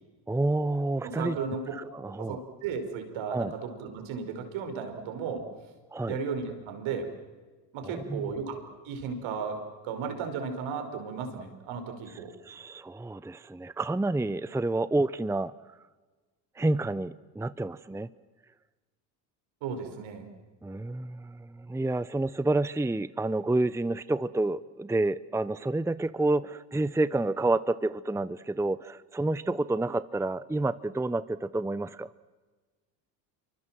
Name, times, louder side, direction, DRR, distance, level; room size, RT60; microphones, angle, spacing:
voice 1, 0.3-1.4 1.7-2.4 3.3-3.5 5.9-6.2 7.8-8.3 12.4-15.5 16.6-18.1 20.6-32.1, right 2 dB, 5° right, 16 dB, 0.8 m, -29 dB
voice 2, 1.0-1.7 2.2-5.4 6.1-7.1 7.7-12.3 19.6-20.3, right 5 dB, 70° right, 6 dB, 5.3 m, -35 dB
27.5 x 24.5 x 7.6 m, 1.3 s
hypercardioid pair, 65°, 49 cm